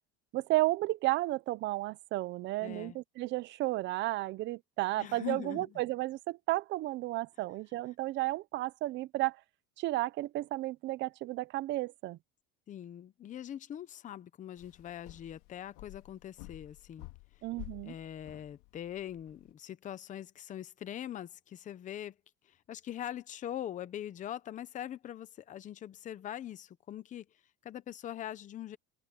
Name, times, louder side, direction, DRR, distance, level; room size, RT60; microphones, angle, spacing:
voice 1, 0.3-9.4 9.8-12.2 17.4-17.9, right 18 dB, 35° right, 0.5 m, -33 dB
voice 2, 2.6-3.0 5.0-5.8 12.7-17.1 17.8-22.1 22.5-27.3 27.6-28.8, left 11 dB, 20° left, 0.6 m, -42 dB
sound 1, 14.6-19.5, left 22 dB, 80° left, 2.4 m, -51 dB
open air
cardioid pair, 175°, 34 cm